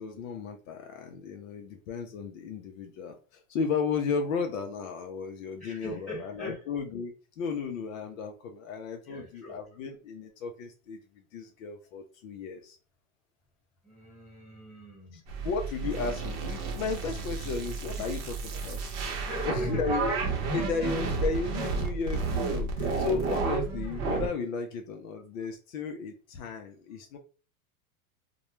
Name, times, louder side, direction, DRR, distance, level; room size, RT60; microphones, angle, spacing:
voice 1, 0.0-11.0 11.3-12.8 15.1-18.2 18.5-18.9 19.5-20.2 20.5-27.2, left 5 dB, 65° left, 0.6 m, -34 dB
voice 2, 5.6-6.7 9.0-9.6 13.8-15.3 19.3-20.1 20.9-21.2 25.1-25.5, left 1 dB, ahead, 1.3 m, -42 dB
sound 1, 15.3-24.3, right 4 dB, 45° right, 0.7 m, -31 dB
2.2 x 2.1 x 2.9 m
supercardioid pair, 135°, 44 cm